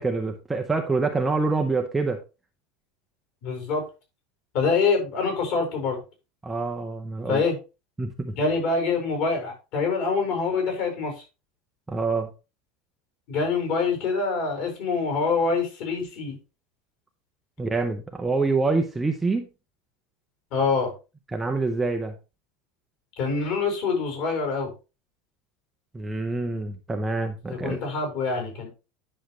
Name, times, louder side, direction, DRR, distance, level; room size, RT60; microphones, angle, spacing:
voice 1, 0.0-2.2 6.4-7.4 8.0-8.4 11.9-12.3 17.6-19.5 21.3-22.1 25.9-27.8, right 3 dB, 5° right, 4 dB, 0.6 m, -26 dB
voice 2, 3.4-3.8 4.5-6.0 7.3-7.6 8.4-11.2 13.3-16.4 20.5-20.9 23.2-24.7 27.5-28.7, left 4 dB, 45° left, 2 dB, 4.8 m, -25 dB
10.0 x 6.4 x 3.1 m, 0.29 s
supercardioid pair, 180°, 2 cm